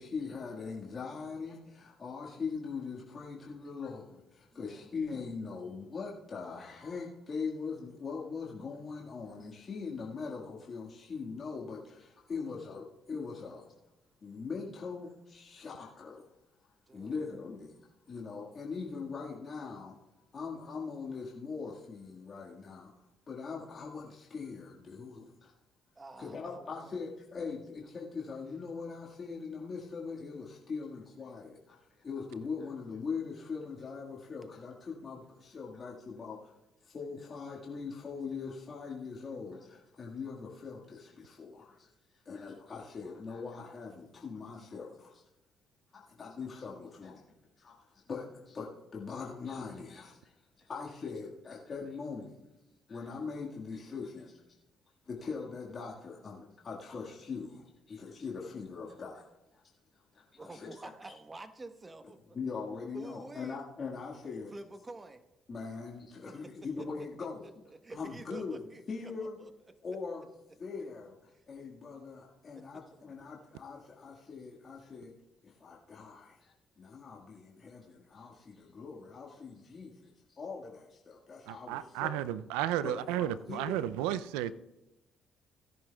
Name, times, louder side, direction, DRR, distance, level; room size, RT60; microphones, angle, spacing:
voice 1, 0.0-13.7 14.2-16.3 16.9-20.0 20.3-22.9 23.3-25.5 26.2-36.5 36.8-41.9 42.2-45.2 45.9-47.3 47.6-52.4 52.9-54.4 55.1-59.6 60.1-60.7 62.3-64.5 65.5-67.5 67.9-69.4 69.8-70.3 70.6-75.1 75.4-82.1 82.8-83.8, left 5 dB, 45° left, 1.7 m, -41 dB
voice 2, 4.5-4.9 16.9-17.3 26.0-27.0 60.4-62.4 62.9-63.6 64.5-65.2 66.2-66.5 66.8-66.9 67.2-69.7 71.3-71.4 72.5-73.0, right 2 dB, 25° right, 1.1 m, -49 dB
voice 3, 81.5-84.5, right 12 dB, 85° right, 0.3 m, -33 dB
17.0 x 10.5 x 2.3 m
supercardioid pair, 60°, 0 cm